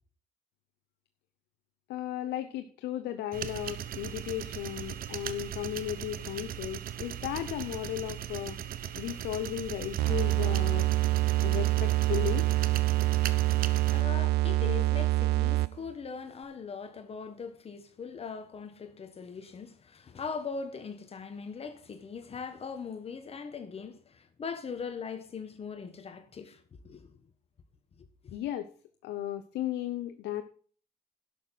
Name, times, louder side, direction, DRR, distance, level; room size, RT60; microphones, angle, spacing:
voice 1, 1.9-8.6 9.0-10.9 11.4-12.5 28.3-28.7 29.0-30.4, left 12 dB, 80° left, 0.9 m, -35 dB
sound 1, 3.3-14.0, right 10 dB, 60° right, 1.0 m, -39 dB
sound 2, 10.0-15.9, right 17 dB, 75° right, 0.5 m, -26 dB
voice 2, 13.9-27.2 28.0-28.1, left 5 dB, 35° left, 1.4 m, -40 dB
11.5 x 6.8 x 5.8 m
cardioid pair, 110°, 17 cm